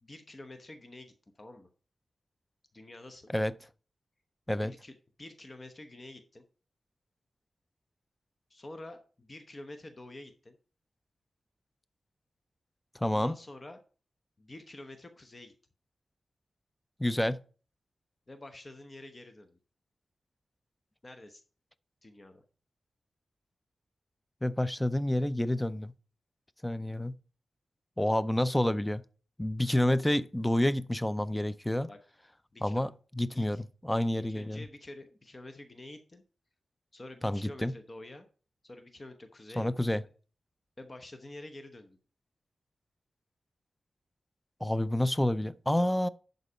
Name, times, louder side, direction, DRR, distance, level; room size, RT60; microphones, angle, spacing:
voice 1, 0.0-1.7 2.7-3.3 4.6-6.4 8.5-10.6 13.0-13.8 14.4-15.5 18.3-19.6 21.0-21.4 22.0-22.4 31.9-32.0 32.5-32.9 33.3-33.6 34.1-36.2 36.9-38.3 38.6-39.7 40.8-42.0, left 2 dB, 30° left, 0.9 m, -48 dB
voice 2, 12.9-13.4 17.0-17.4 24.4-25.9 26.6-27.2 28.0-29.0 29.4-31.9 32.6-32.9 33.2-34.6 37.2-37.7 39.6-40.0 44.6-46.1, left 1 dB, 10° left, 0.4 m, -29 dB
11.0 x 4.1 x 5.0 m
wide cardioid pair, 110°, 0 cm